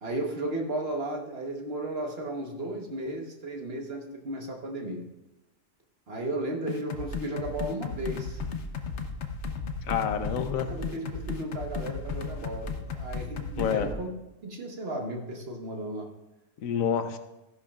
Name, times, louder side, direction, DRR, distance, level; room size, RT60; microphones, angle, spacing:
voice 1, 0.0-5.0 6.1-8.4 10.7-14.1 14.4-16.1, right 1 dB, 50° right, 2 dB, 1.4 m, -34 dB
sound 1, 6.7-13.9, left 4 dB, 60° left, 1.1 m, -34 dB
voice 2, 9.9-10.7 13.6-13.9 16.6-17.2, left 7 dB, 85° left, 9 dB, 1.2 m, -28 dB
14.5 x 10.5 x 2.4 m, 0.96 s
omnidirectional pair, 1.4 m